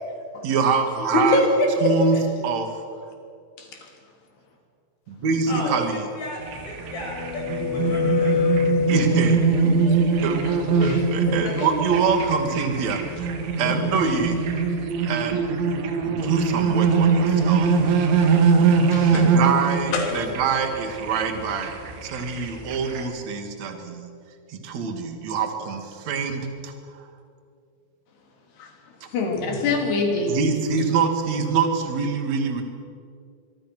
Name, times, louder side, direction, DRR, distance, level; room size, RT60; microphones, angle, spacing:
voice 1, 0.4-1.4 1.8-2.2 2.4-2.7 5.1-6.1 8.9-9.4 10.2-10.4 10.8-14.4 15.1-15.4 16.0-17.8 19.1-24.1 24.5-26.7 30.3-32.6, right 5 dB, 45° right, 5 dB, 2.7 m, -25 dB
voice 2, 1.1-2.0 3.6-3.7 9.6-10.2 10.4-10.5 10.8-11.7 13.6-13.8 16.2-16.3 18.9-19.3 19.9-20.1 28.6-28.7 29.1-30.3, left 2 dB, 60° left, 2 dB, 5.1 m, -24 dB
voice 3, 5.5-8.7, equal, 35° left, -2 dB, 7.5 m, -34 dB
sound 1, 6.4-23.0, right 5 dB, 75° right, 4.2 m, -22 dB
sound 2, 6.6-9.7, left 8 dB, 85° left, 4.5 m, -26 dB
24.5 x 23.5 x 6.2 m, 2.4 s
omnidirectional pair, 5.5 m